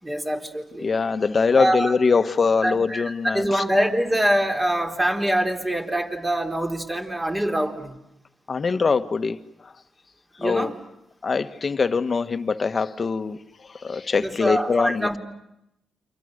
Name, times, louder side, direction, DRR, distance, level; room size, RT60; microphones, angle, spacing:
voice 1, 0.0-0.9 1.6-2.0 2.6-8.0 10.4-10.7 14.2-15.2, equal, 15° right, 3.9 m, -24 dB
voice 2, 0.8-3.6 8.5-9.7 10.4-10.7 11.2-13.4 13.7-15.1, left 4 dB, 45° left, 1.3 m, -23 dB
29.5 x 25.5 x 6.7 m
cardioid pair, 65°, 0 cm